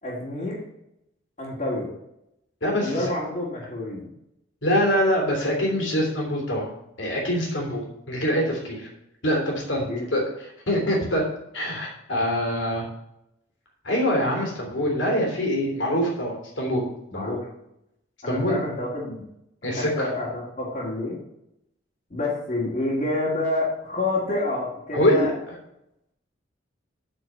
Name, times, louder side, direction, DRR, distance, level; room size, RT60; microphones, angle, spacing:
voice 1, 0.0-0.6 1.4-1.9 2.8-4.1 9.9-10.1 17.1-17.5 18.2-19.2 19.8-21.2 22.1-25.3, left 2 dB, 40° left, -8 dB, 2.1 m, -28 dB
voice 2, 2.6-3.1 4.6-6.7 7.0-8.9 9.2-11.2 11.5-12.8 13.8-16.8 17.1-17.4 18.3-18.6 19.6-20.1 24.9-25.3, equal, 80° left, -1 dB, 3.0 m, -24 dB
8.9 x 4.5 x 7.3 m, 0.83 s
head